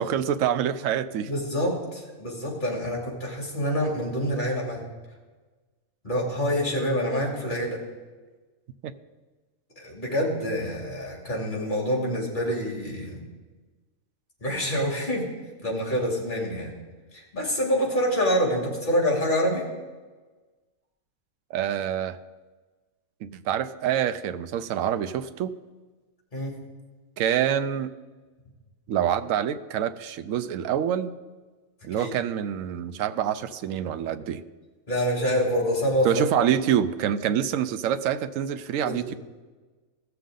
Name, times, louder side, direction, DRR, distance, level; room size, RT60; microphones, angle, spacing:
voice 1, 0.0-1.3 21.5-22.2 23.2-25.5 27.2-27.9 28.9-31.1 31.8-34.4 36.0-39.1, right 9 dB, 75° right, 11 dB, 1.0 m, -26 dB
voice 2, 1.3-4.8 6.0-7.8 9.8-13.2 14.4-15.2 15.6-16.7 17.1-19.6 26.3-26.5 31.9-32.1 34.9-36.2 38.8-39.1, equal, 35° left, -2 dB, 2.8 m, -26 dB
16.5 x 6.9 x 3.8 m, 1.3 s
omnidirectional pair, 1.4 m